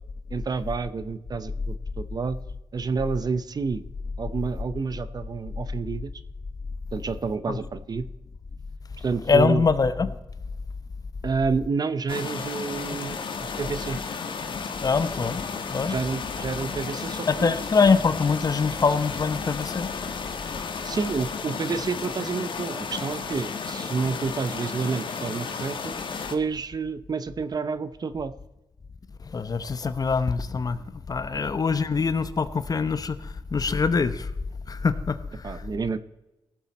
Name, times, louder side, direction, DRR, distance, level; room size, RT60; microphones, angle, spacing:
voice 1, 0.3-2.4 2.7-3.8 4.2-6.1 6.9-8.1 9.0-9.7 11.2-14.0 15.2-15.3 15.9-17.5 20.8-26.0 26.3-28.3 31.4-31.5 35.4-36.0, right 5 dB, 45° right, 13 dB, 0.7 m, -29 dB
voice 2, 9.3-10.2 14.8-15.4 15.7-15.9 17.3-19.9 29.2-34.3 34.7-35.5, left 5 dB, 40° left, 12 dB, 0.8 m, -24 dB
sound 1, 12.1-26.4, left 5 dB, 60° left, 1.3 m, -33 dB
17.5 x 7.6 x 4.2 m, 1.0 s
cardioid pair, 75°, 10 cm